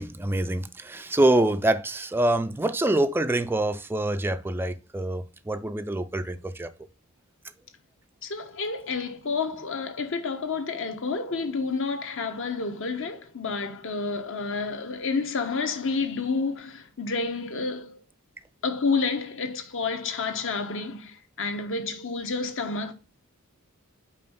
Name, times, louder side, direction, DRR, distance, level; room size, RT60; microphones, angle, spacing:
voice 1, 0.0-6.7, right 1 dB, 10° right, 0.4 m, -25 dB
voice 2, 8.2-18.0 18.6-22.9, left 4 dB, 60° left, 1.1 m, -29 dB
5.5 x 4.3 x 5.4 m
head